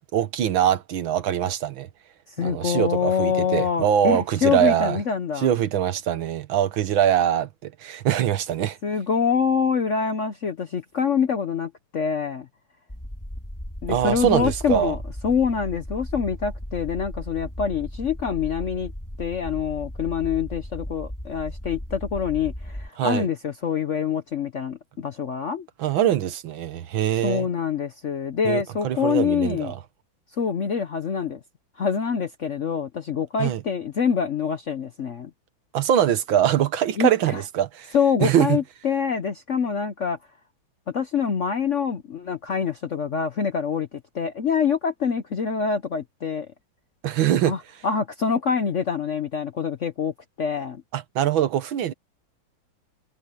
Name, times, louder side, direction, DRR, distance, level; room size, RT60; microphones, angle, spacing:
voice 1, 0.1-1.9 2.4-5.0 5.4-8.8 13.9-15.0 23.0-23.3 25.8-27.5 28.4-29.8 33.4-33.6 35.7-38.0 38.2-38.6 47.0-47.5 50.9-51.9, right 10 dB, 75° right, 1.8 m, -23 dB
voice 2, 2.4-5.5 8.8-12.5 13.8-18.9 19.2-25.7 27.2-29.7 30.4-31.4 31.8-35.3 37.0-37.4 37.9-40.2 40.9-46.5 47.5-50.8, left 6 dB, 55° left, 0.8 m, -25 dB
sound 1, 12.9-22.9, equal, 10° left, 3.5 m, -36 dB
omnidirectional pair, 2.2 m